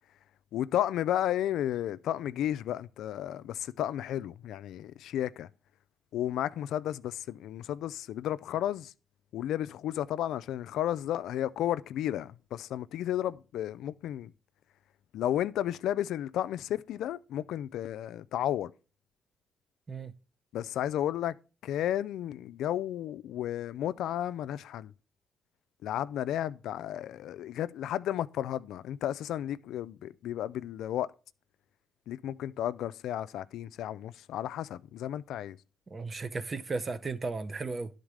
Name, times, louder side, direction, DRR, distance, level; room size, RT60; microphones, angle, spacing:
voice 1, 0.5-5.5 6.1-8.9 9.3-14.3 15.1-18.7 20.5-21.3 21.6-24.9 25.8-31.1 32.1-35.6, left 11 dB, 80° left, 0.3 m, -33 dB
voice 2, 35.9-37.9, right 3 dB, 35° right, 0.7 m, -35 dB
11.0 x 4.0 x 4.8 m
cardioid pair, 90°, 0 cm